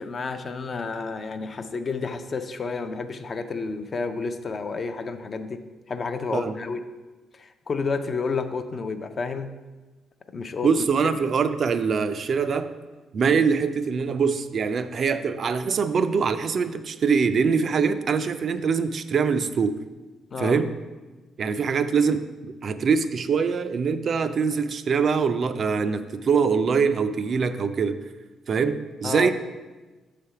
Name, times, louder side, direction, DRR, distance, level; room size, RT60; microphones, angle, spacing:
voice 1, 0.0-5.6 5.9-6.8 7.3-9.5 10.3-10.7 20.3-20.6 29.0-29.3, left 4 dB, 40° left, 8 dB, 0.5 m, -30 dB
voice 2, 10.6-12.7 13.1-19.8 20.4-20.7 21.4-28.0 28.5-29.3, right 5 dB, 50° right, 10 dB, 0.4 m, -23 dB
6.7 x 3.4 x 5.6 m, 1.2 s
cardioid pair, 90°, 0 cm